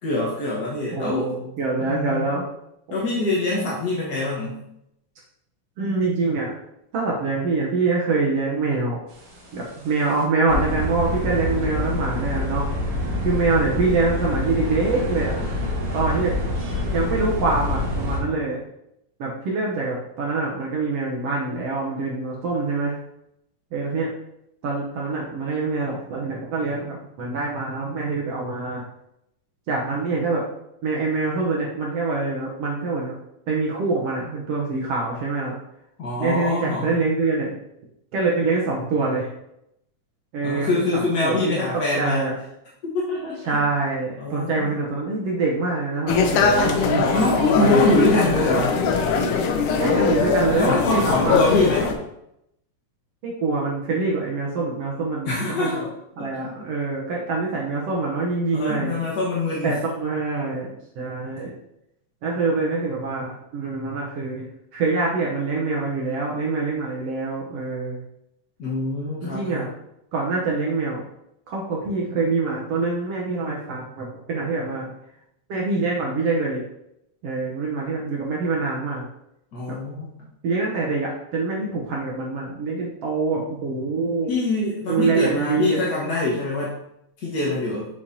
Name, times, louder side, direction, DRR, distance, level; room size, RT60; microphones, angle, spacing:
voice 1, 0.0-1.4 1.8-2.4 2.9-4.6 36.0-36.9 40.4-42.3 42.9-43.6 44.2-44.7 47.1-48.8 50.3-51.9 55.2-55.9 56.2-56.5 58.5-59.8 68.6-69.7 79.5-80.2 84.3-86.7 87.2-87.9, left 2 dB, 50° left, -6 dB, 1.2 m, -25 dB
voice 2, 0.9-2.5 5.8-6.5 6.9-9.0 9.5-12.7 13.2-15.4 15.9-16.4 16.9-18.6 19.2-23.0 23.7-24.1 24.6-28.8 29.7-30.4 30.8-33.1 33.5-35.5 36.2-37.5 38.1-39.3 40.3-41.4 42.0-42.3 43.5-48.7 49.7-51.5 53.2-55.8 56.2-58.9 59.6-61.5 62.2-64.5 64.7-68.0 69.2-69.7 70.1-71.0 71.5-74.9 75.5-76.6 77.2-79.0 80.4-84.3 84.9-85.8, right 3 dB, 65° right, -2 dB, 1.6 m, -25 dB
sound 1, 9.2-9.6 10.0-10.1 10.5-18.2, left 2 dB, 45° right, 2.4 m, -26 dB
sound 2, 46.1-51.9, left 5 dB, 75° left, 2.2 m, -21 dB
7.3 x 6.9 x 2.8 m, 0.80 s
omnidirectional pair, 3.8 m